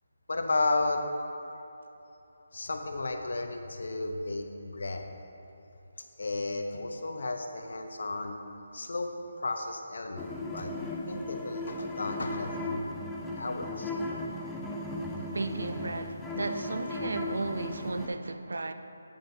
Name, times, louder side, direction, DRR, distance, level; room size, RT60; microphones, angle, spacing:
voice 1, 0.3-1.0 2.5-5.0 6.2-8.4 8.7-9.1 9.4-10.7 11.1-12.9 13.4-13.9, left 2 dB, 75° left, 0.8 m, -33 dB
sound 1, 10.2-18.1, left 1 dB, 5° left, 0.5 m, -36 dB
voice 2, 15.2-18.7, right 2 dB, 80° right, 0.5 m, -34 dB
9.2 x 8.7 x 2.7 m
hypercardioid pair, 165°, 0 cm